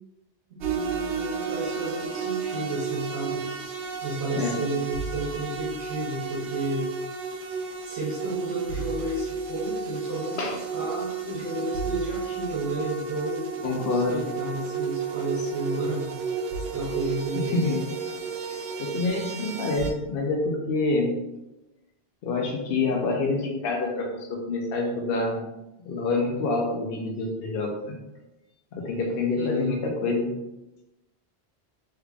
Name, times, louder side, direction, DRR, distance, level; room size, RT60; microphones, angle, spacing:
voice 1, 0.5-3.5 4.0-6.9 7.8-16.1 16.7-17.6 29.3-29.7, right 2 dB, 85° right, -7 dB, 1.2 m, -32 dB
sound 1, 0.6-19.9, right 5 dB, 65° right, 0.8 m, -32 dB
voice 2, 13.6-14.2 17.5-17.8 18.8-21.1 22.2-25.4 25.8-28.0 28.7-30.3, left 3 dB, 65° left, 0 dB, 0.7 m, -27 dB
3.4 x 3.2 x 2.3 m, 0.96 s
omnidirectional pair, 1.1 m